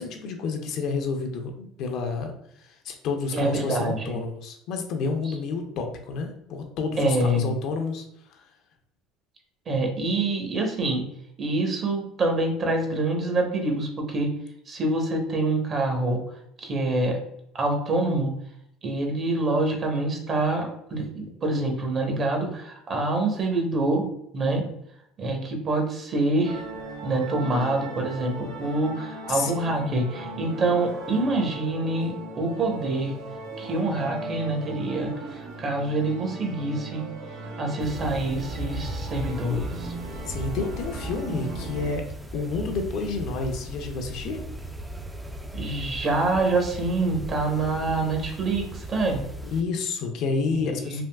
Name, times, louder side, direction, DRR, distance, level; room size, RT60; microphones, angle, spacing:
voice 1, 0.0-8.0 8.3-8.4 29.3-29.5 29.9-30.0 40.3-42.0 42.3-44.4 49.4-51.0, left 4 dB, 65° left, 4 dB, 0.5 m, -30 dB
voice 2, 3.3-4.2 7.0-7.5 9.7-11.0 11.4-14.3 14.7-16.2 16.6-17.2 17.5-18.3 18.8-24.1 24.3-24.7 25.2-26.6 27.0-33.1 33.6-37.1 37.6-39.9 45.5-49.2 50.5-51.0, right 2 dB, 40° right, 2 dB, 0.8 m, -26 dB
sound 1, 26.4-42.0, right 2 dB, 80° right, 0.7 m, -38 dB
sound 2, 37.8-49.6, right 1 dB, 10° right, 0.3 m, -37 dB
3.5 x 2.5 x 2.2 m, 0.74 s
supercardioid pair, 105°, 0 cm